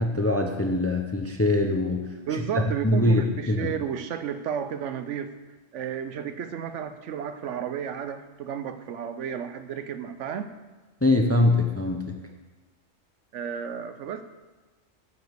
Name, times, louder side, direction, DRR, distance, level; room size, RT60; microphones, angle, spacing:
voice 1, 0.0-2.4 2.8-3.7 11.0-12.2, left 2 dB, 15° left, 3 dB, 0.5 m, -23 dB
voice 2, 2.3-5.3 5.7-10.5 13.3-14.2, right 8 dB, 70° right, 10 dB, 0.9 m, -32 dB
9.2 x 5.1 x 7.9 m, 1.2 s
omnidirectional pair, 1.3 m